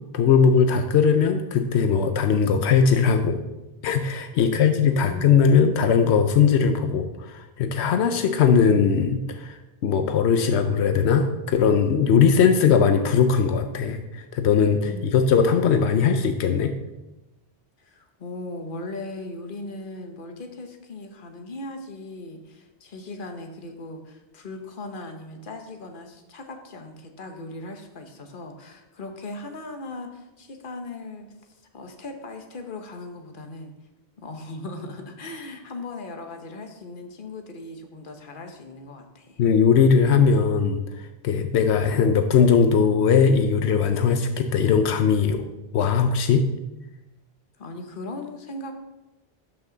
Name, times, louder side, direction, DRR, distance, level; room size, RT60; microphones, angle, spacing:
voice 1, 0.1-3.4 3.8-9.6 9.8-16.7 39.4-45.4 45.7-46.4, left 6 dB, 85° left, 7 dB, 0.9 m, -20 dB
voice 2, 4.4-5.5 14.9-16.0 17.8-33.7 34.2-39.4 47.6-48.7, left 2 dB, 55° left, 5 dB, 1.2 m, -38 dB
12.0 x 5.8 x 3.9 m, 1.0 s
omnidirectional pair, 1.1 m